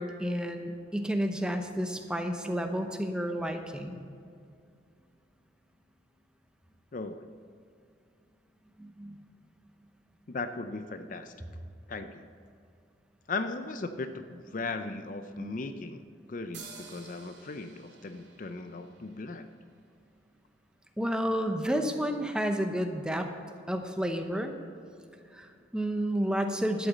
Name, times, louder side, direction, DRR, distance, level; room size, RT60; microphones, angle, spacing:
voice 1, 0.0-4.0 8.8-9.2 15.3-15.6 21.0-23.3 23.7-24.5 25.3-26.9, equal, 5° right, 5 dB, 0.8 m, -31 dB
voice 2, 6.9-7.2 10.3-11.3 11.9-12.3 13.3-19.5, left 3 dB, 45° left, 9 dB, 0.5 m, -37 dB
sound 1, 16.5-20.1, right 5 dB, 70° right, 2.5 m, -51 dB
12.0 x 8.1 x 7.3 m, 2.4 s
head